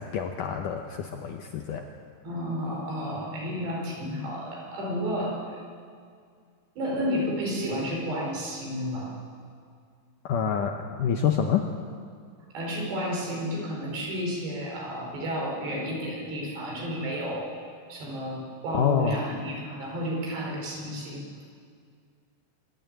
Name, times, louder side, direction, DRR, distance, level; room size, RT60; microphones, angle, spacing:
voice 1, 0.0-1.8 10.3-11.6 18.7-19.2, left 7 dB, 80° left, 4 dB, 1.9 m, -27 dB
voice 2, 2.2-5.6 6.8-9.2 12.5-21.5, equal, 80° right, -2 dB, 6.8 m, -32 dB
24.5 x 11.5 x 9.2 m, 2.2 s
omnidirectional pair, 4.8 m